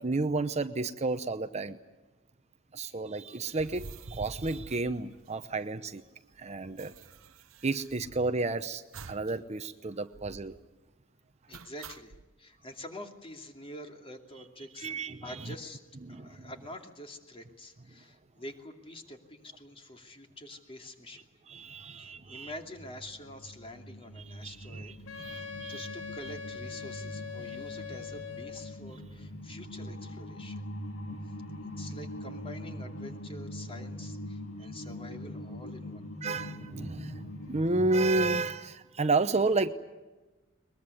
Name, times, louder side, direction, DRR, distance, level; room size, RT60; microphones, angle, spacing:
voice 1, 0.0-1.8 2.7-6.0 6.4-6.9 7.6-10.5 14.8-15.5 16.0-16.5 21.5-22.5 24.4-25.9 29.0-29.1 31.1-31.2 36.2-39.7, right 3 dB, 35° right, 10 dB, 0.8 m, -31 dB
sound 1, 3.5-5.8 6.0-6.1 6.3-8.4 8.9-9.4 9.6-9.7 10.1-10.6 11.5-12.2, right 4 dB, 80° right, 0.9 m, -47 dB
voice 2, 11.5-14.9 15.2-15.8 16.1-21.3 22.0-30.6 31.2-36.1, left 1 dB, 25° left, 4 dB, 2.7 m, -47 dB
sound 2, 21.7-38.4, left 1 dB, 75° left, 2.3 m, -43 dB
Wind instrument woodwind instrument, 25.1-28.8, left 7 dB, 90° left, 1.4 m, -42 dB
22.0 x 22.0 x 9.8 m, 1.2 s
head